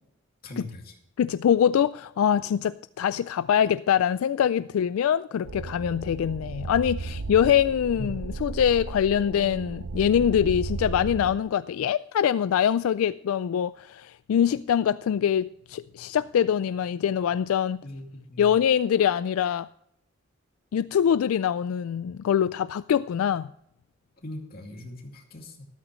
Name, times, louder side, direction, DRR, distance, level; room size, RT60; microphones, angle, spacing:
voice 1, 0.4-0.9 8.0-8.1 17.8-18.6 24.2-25.7, left 1 dB, 45° left, 2.4 m, -40 dB
voice 2, 1.2-17.8 18.4-19.7 20.7-23.5, left 9 dB, 85° left, 0.3 m, -24 dB
sound 1, 5.4-11.4, right 3 dB, 70° right, 0.6 m, -35 dB
13.0 x 12.5 x 3.1 m
head